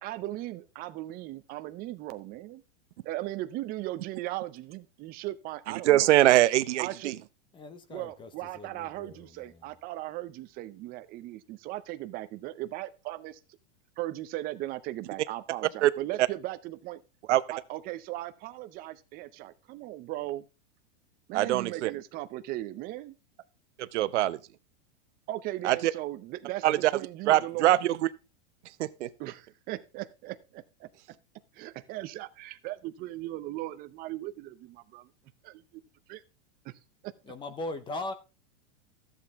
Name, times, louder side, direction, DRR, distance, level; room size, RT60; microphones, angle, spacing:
voice 1, 0.0-2.6 3.0-6.1 6.8-7.1 7.9-13.4 14.0-17.0 17.5-20.4 21.3-23.2 25.3-26.7 26.9-27.7 29.2-30.9 31.5-35.1 35.4-35.6 36.1-36.2 36.6-36.7 37.0-37.1, right 16 dB, 25° right, 0.6 m, -38 dB
voice 2, 5.9-7.1 15.8-15.9 17.3-17.4 21.3-21.9 23.8-24.4 25.6-25.9 26.6-26.9 27.3-28.0 28.8-29.1, right 14 dB, 80° right, 0.8 m, -23 dB
voice 3, 7.5-8.3 8.6-8.7 9.0-9.2 37.3-38.1, left 2 dB, 15° left, 0.6 m, -38 dB
13.5 x 7.7 x 3.5 m
supercardioid pair, 155°, 35 cm